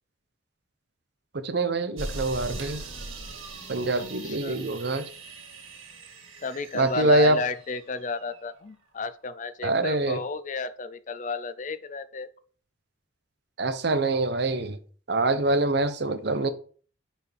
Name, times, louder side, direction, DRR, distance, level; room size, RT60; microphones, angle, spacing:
voice 1, 1.3-2.8 3.7-5.0 6.7-7.4 9.6-10.2 13.6-14.8 15.1-16.5, right 2 dB, 55° right, 0.8 m, -24 dB
sound 1, 2.0-8.4, right 2 dB, 90° right, 1.8 m, -41 dB
voice 2, 4.2-4.6 6.4-12.3, left 3 dB, 40° left, 0.5 m, -33 dB
10.0 x 4.4 x 3.4 m
head